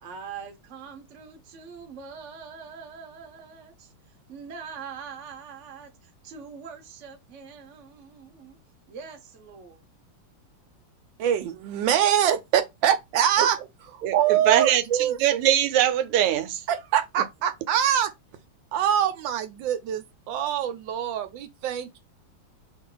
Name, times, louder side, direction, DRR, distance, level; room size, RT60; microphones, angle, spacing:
voice 1, 0.0-3.9 4.3-8.6 8.9-9.8, right 6 dB, 50° right, 0.9 m, -43 dB
voice 2, 11.2-15.4 16.7-18.1 18.7-22.0, right 10 dB, 70° right, 1.2 m, -24 dB
voice 3, 14.0-14.8 15.2-16.6, right 11 dB, 85° right, 1.5 m, -22 dB
3.2 x 2.7 x 3.8 m
omnidirectional pair, 2.4 m